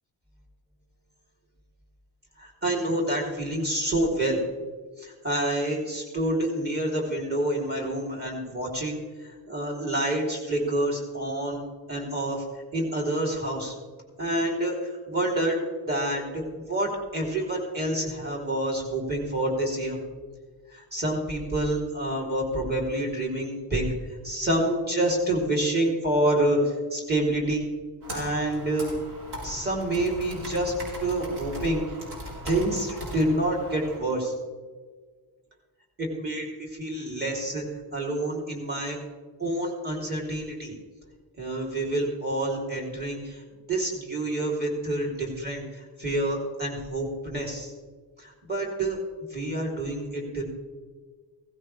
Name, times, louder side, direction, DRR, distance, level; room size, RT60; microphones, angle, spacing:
voice 1, 2.4-4.4 5.0-11.6 11.9-12.4 12.7-13.7 14.2-20.0 20.7-23.9 24.2-27.6 28.1-29.0 29.4-30.7 31.0-32.0 32.4-34.3 36.0-37.6 37.9-39.0 39.4-40.7 41.4-43.4 43.7-47.7 48.2-49.0 49.3-50.4, right 1 dB, 20° right, -2 dB, 3.3 m, -28 dB
Computer keyboard, 28.0-34.0, equal, 65° right, 5.4 m, -39 dB
16.5 x 16.0 x 3.3 m, 1.5 s
wide cardioid pair, 175°, 43 cm